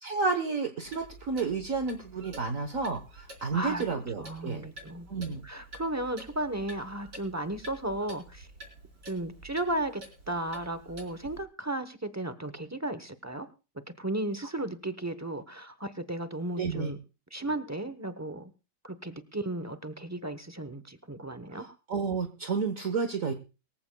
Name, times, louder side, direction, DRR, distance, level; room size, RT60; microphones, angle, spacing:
voice 1, 0.0-4.7 5.1-5.4 16.6-16.9 21.5-23.3, right 4 dB, 55° right, 6 dB, 1.5 m, -31 dB
Clock, 0.9-11.4, right 1 dB, 85° right, 5.0 m, -49 dB
voice 2, 3.5-8.5 9.1-10.0 10.3-13.5 14.0-17.0 17.3-18.5 18.8-21.6, right 1 dB, 15° right, 11 dB, 0.6 m, -35 dB
23.5 x 15.0 x 2.3 m, 0.32 s
omnidirectional pair, 1.8 m